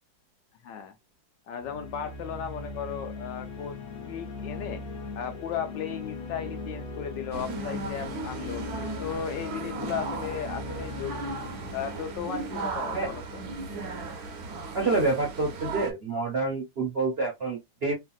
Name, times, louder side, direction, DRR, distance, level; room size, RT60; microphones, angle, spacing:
voice 1, 0.6-0.9 1.5-3.8 4.0-4.8 5.2-8.7 9.0-11.4 11.7-13.4, left 8 dB, 75° left, 1.2 m, -36 dB
sound 1, 1.6-13.1, left 4 dB, 50° left, 0.6 m, -39 dB
sound 2, 7.3-15.9, right 4 dB, 65° right, 1.1 m, -36 dB
voice 2, 14.7-17.9, right 3 dB, 45° right, 0.8 m, -27 dB
3.3 x 2.5 x 2.2 m
omnidirectional pair, 2.1 m